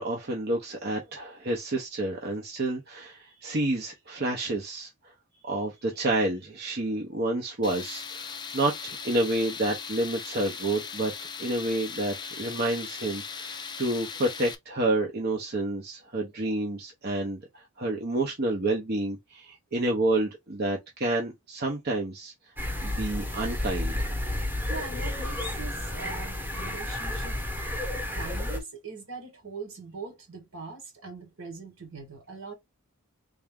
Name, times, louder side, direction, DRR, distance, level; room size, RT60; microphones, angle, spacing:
voice 1, 0.0-5.1 5.4-11.1 11.4-22.3 22.8-24.1, right 2 dB, 45° right, 0.7 m, -29 dB
Tools, 7.6-14.5, left 6 dB, 20° left, 0.4 m, -39 dB
sound 1, 22.6-28.6, left 1 dB, 10° right, 1.0 m, -31 dB
voice 2, 24.7-27.4 28.1-32.5, right 4 dB, 65° right, 1.3 m, -41 dB
3.5 x 2.6 x 3.5 m
head